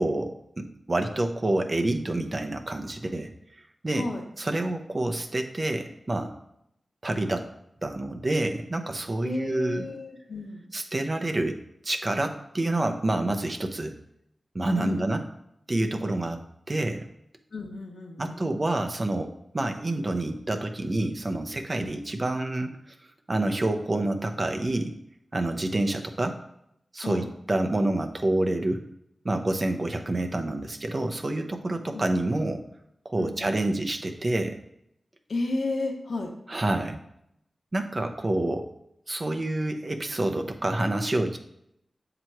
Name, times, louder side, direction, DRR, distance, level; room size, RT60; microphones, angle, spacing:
voice 1, 0.0-3.3 3.8-4.1 4.4-6.3 7.0-7.5 7.8-9.9 10.7-13.9 14.5-15.2 15.7-16.4 16.7-17.1 18.2-22.8 23.3-24.9 25.3-26.4 26.9-28.8 29.2-32.6 33.0-34.6 36.5-37.0 37.7-38.7 39.1-41.4, right 2 dB, 35° right, 5 dB, 0.6 m, -28 dB
voice 2, 3.9-4.3 9.2-10.7 14.7-15.1 17.5-18.5 21.8-21.9 27.0-27.3 31.9-32.1 33.2-33.8 35.3-36.3, left 2 dB, 75° left, 2 dB, 1.0 m, -33 dB
7.5 x 2.9 x 4.5 m, 0.76 s
wide cardioid pair, 85°, 0 cm